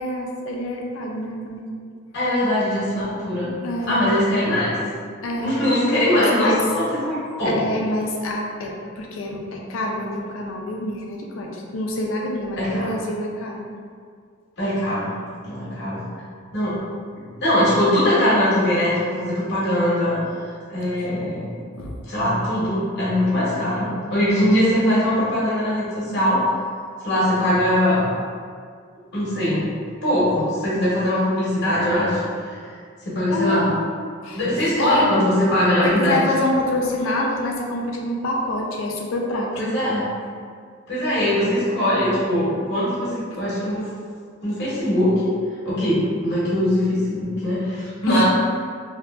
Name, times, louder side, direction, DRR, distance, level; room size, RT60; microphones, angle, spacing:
voice 1, 0.0-1.7 3.4-4.0 5.2-5.7 6.1-6.6 7.4-13.7 21.7-22.0 33.3-33.8 34.2-34.4 34.8-35.1 35.8-39.5 43.3-43.4 48.1-48.2, left 1 dB, 80° left, 0 dB, 0.4 m, -26 dB
voice 2, 2.1-3.5 3.9-4.8 5.4-7.8 12.6-12.9 14.6-15.1 15.4-16.0 16.5-16.7 17.4-20.2 20.7-21.5 22.0-26.4 27.0-28.1 29.1-29.7 30.0-32.6 33.0-33.7 34.3-36.3 39.6-40.1 40.9-43.9 44.4-45.4 45.6-48.2, left 1 dB, 60° left, -9 dB, 0.9 m, -21 dB
2.7 x 2.4 x 2.3 m, 2.1 s
head